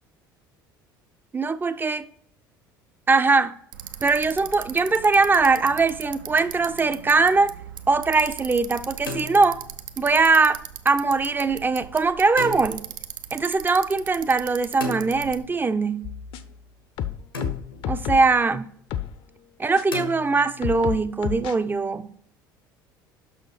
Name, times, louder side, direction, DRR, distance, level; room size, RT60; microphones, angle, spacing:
voice 1, 1.3-2.1 3.1-3.5 4.0-7.5 7.9-9.6 10.0-12.9 13.3-16.1 17.9-18.7 19.6-22.1, right 4 dB, 15° right, 0.5 m, -21 dB
Bicycle, 3.7-15.5, right 9 dB, 70° right, 0.6 m, -39 dB
sound 1, 5.7-6.2 8.8-10.0 12.4-12.9 14.8-15.7 17.3-18.0 19.9-20.8, left 3 dB, 85° left, 1.3 m, -36 dB
sound 2, 16.0-16.6 17.0-18.4 18.9-19.1 19.8-19.9 20.6-21.5, left 10 dB, 50° left, 0.6 m, -31 dB
6.3 x 6.2 x 4.8 m
figure-of-eight pair, 65°, 11 cm